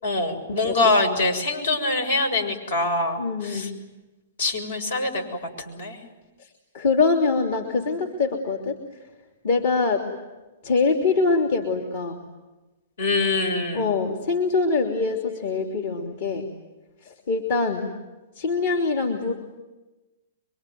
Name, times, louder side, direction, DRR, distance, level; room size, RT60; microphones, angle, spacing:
voice 1, 0.0-3.7 4.4-5.2 5.7-6.0 13.0-13.8, left 2 dB, 80° left, 5 dB, 6.8 m, -24 dB
voice 2, 0.6-1.0 3.2-3.7 6.7-8.8 9.4-10.1 10.6-12.2 13.7-16.5 17.0-17.9 18.4-19.3, left 4 dB, 60° left, 2 dB, 3.1 m, -24 dB
25.5 x 24.0 x 9.4 m, 1.1 s
hypercardioid pair, 130°, 0 cm